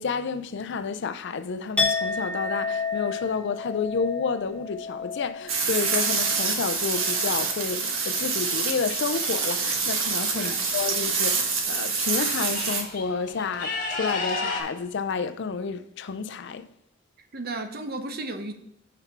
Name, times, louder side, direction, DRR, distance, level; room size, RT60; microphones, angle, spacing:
voice 1, 0.0-16.7, left 5 dB, 60° left, 0.5 m, -30 dB
Chink clink, 1.8-7.7 8.0-8.4, left 4 dB, 5° left, 1.4 m, -32 dB
sound 1, 5.5-12.8, right 5 dB, 90° right, 1.4 m, -26 dB
sound 2, 9.4-10.5 11.6-11.7 12.0-14.6, left 3 dB, 45° left, 1.3 m, -33 dB
voice 2, 10.3-10.7 17.3-18.5, right 2 dB, 50° right, 0.8 m, -34 dB
5.9 x 5.7 x 4.5 m
head